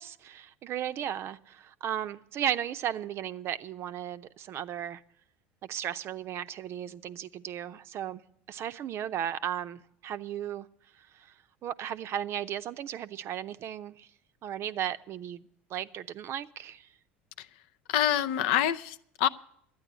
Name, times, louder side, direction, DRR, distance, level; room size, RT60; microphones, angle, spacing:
voice 1, 0.0-5.0 5.6-8.2 8.5-10.7 11.0-11.3 11.6-14.1 14.4-16.9, right 10 dB, 45° right, 0.6 m, -35 dB
voice 2, 17.9-19.3, left 11 dB, 65° left, 0.5 m, -26 dB
12.0 x 9.6 x 8.1 m
hypercardioid pair, 70°, 6 cm